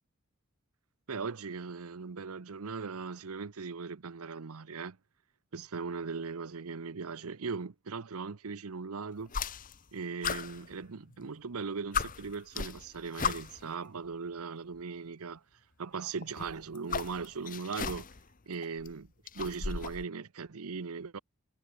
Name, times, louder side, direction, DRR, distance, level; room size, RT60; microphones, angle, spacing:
voice 1, 1.1-5.0 5.5-9.3 9.9-15.4 15.8-18.1 18.5-19.1 19.3-21.2, right 5 dB, 75° right, 0.8 m, -39 dB
sound 1, 9.3-9.9 10.2-11.3 11.6-11.7 11.9-13.7 14.7-14.8 16.2-18.3 18.6-20.0, left 6 dB, 40° left, 1.0 m, -36 dB
head